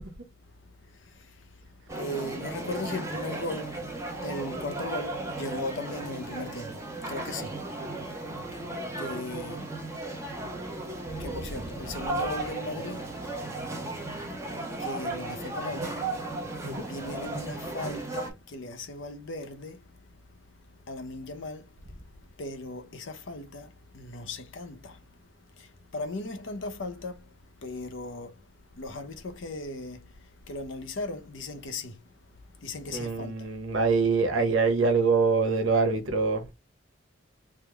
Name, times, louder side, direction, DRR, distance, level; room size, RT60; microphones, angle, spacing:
sound 1, 1.9-18.3, right 2 dB, 15° right, 0.7 m, -35 dB
voice 1, 2.0-3.7 4.2-6.8 7.1-7.5 9.0-9.6 11.2-13.0 14.8-16.0 16.9-19.8 20.9-21.6 22.4-23.7 23.9-25.0 25.9-27.2 27.6-28.3 28.8-30.0 30.5-32.0 32.6-33.3, left 2 dB, 70° left, 0.7 m, -37 dB
voice 2, 32.9-36.4, right 4 dB, 80° right, 0.9 m, -24 dB
3.5 x 2.0 x 3.3 m
head